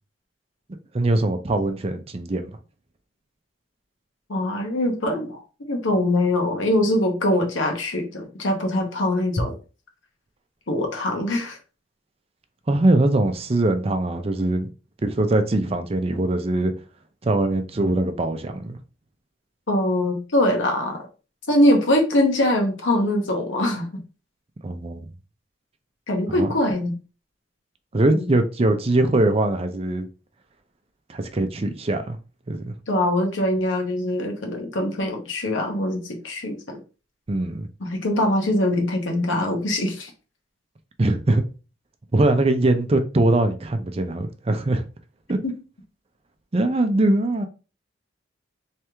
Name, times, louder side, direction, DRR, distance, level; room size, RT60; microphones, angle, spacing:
voice 1, 0.9-2.5 12.7-14.7 15.0-16.7 17.2-18.8 24.6-25.0 26.3-26.5 27.9-30.1 31.1-32.2 32.5-32.6 37.3-37.7 41.0-41.4 42.1-44.8 45.3-45.4 46.5-47.5, right 2 dB, 30° right, 0.5 m, -22 dB
voice 2, 4.3-5.4 5.7-9.5 10.7-11.6 19.7-21.1 21.5-23.9 26.1-27.0 28.1-28.3 32.9-36.8 37.8-40.1 45.4-45.5, left 1 dB, 85° left, 1.0 m, -22 dB
3.5 x 3.2 x 3.0 m
head